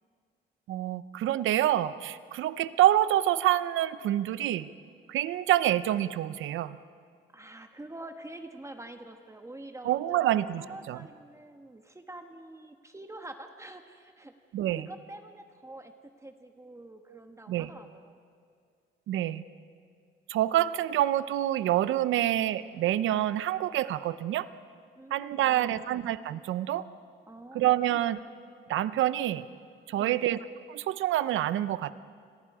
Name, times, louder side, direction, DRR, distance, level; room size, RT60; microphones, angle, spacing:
voice 1, 0.7-4.7 5.1-6.8 9.8-10.6 10.9-11.0 14.5-14.9 17.5-17.7 19.1-19.4 20.3-24.5 25.1-26.9 27.5-28.2 28.7-29.4 29.9-30.4 30.7-31.9, right 13 dB, 80° right, 15 dB, 0.7 m, -27 dB
voice 2, 7.3-10.3 10.6-14.3 14.7-18.2 25.0-25.9 27.3-28.0 29.9-30.3, right 1 dB, 15° right, 6 dB, 1.3 m, -46 dB
29.0 x 21.5 x 4.9 m, 2.1 s
cardioid pair, 90°, 20 cm